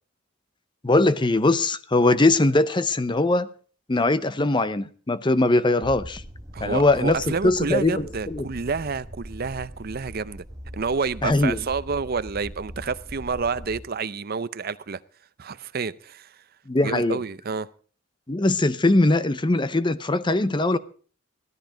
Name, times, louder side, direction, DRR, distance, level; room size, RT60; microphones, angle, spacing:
voice 1, 0.8-3.5 3.9-6.2 6.6-7.2 7.4-8.4 11.2-11.6 16.7-17.2 18.3-20.8, left 2 dB, 25° left, 0.7 m, -21 dB
sound 1, 5.8-13.8, equal, 20° right, 1.1 m, -41 dB
voice 2, 6.5-10.4 10.7-15.0 15.4-16.4 16.8-17.7, right 5 dB, 50° right, 0.6 m, -29 dB
15.5 x 13.5 x 5.1 m
head